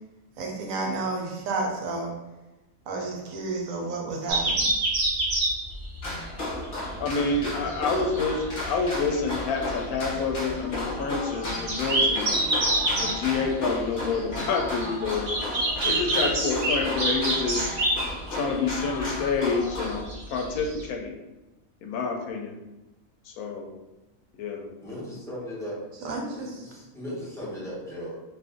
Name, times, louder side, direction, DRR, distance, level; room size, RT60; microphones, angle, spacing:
voice 1, 0.4-2.1 2.9-4.7 26.0-26.7, right 3 dB, 75° right, 0 dB, 1.0 m, -31 dB
sound 1, 4.3-20.9, right 1 dB, 50° right, 0.7 m, -28 dB
sound 2, 6.0-20.0, left 1 dB, 45° left, 0.8 m, -34 dB
voice 2, 7.0-12.4 13.0-15.3 15.8-17.8 18.3-21.1 21.8-22.6 23.3-23.7 24.4-24.7, left 4 dB, 85° left, 2 dB, 1.0 m, -28 dB
voice 3, 24.8-25.8 26.3-28.1, equal, 5° left, -8 dB, 0.7 m, -37 dB
2.6 x 2.5 x 3.5 m, 1.0 s
omnidirectional pair, 1.5 m